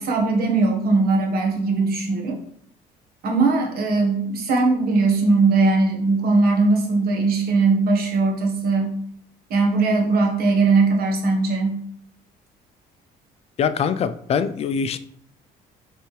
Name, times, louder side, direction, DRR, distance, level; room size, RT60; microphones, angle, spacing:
voice 1, 0.0-2.4 3.2-8.9 9.5-11.8, right 3 dB, 65° right, 1.3 m, -19 dB
voice 2, 13.6-15.0, left 6 dB, 40° left, 0.3 m, -23 dB
4.4 x 3.4 x 3.2 m
cardioid pair, 110°, 17 cm